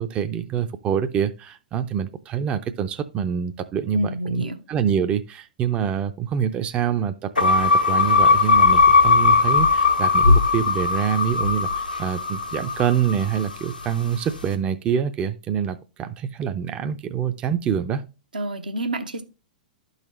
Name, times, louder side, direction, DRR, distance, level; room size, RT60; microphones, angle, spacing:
voice 1, 0.0-18.0, right 8 dB, 25° right, 0.5 m, -26 dB
voice 2, 3.9-4.6 18.3-19.2, right 1 dB, 80° right, 0.9 m, -27 dB
sound 1, 7.4-13.7, left 4 dB, 90° left, 1.1 m, -18 dB
12.0 x 4.0 x 3.1 m
figure-of-eight pair, 105°, 5 cm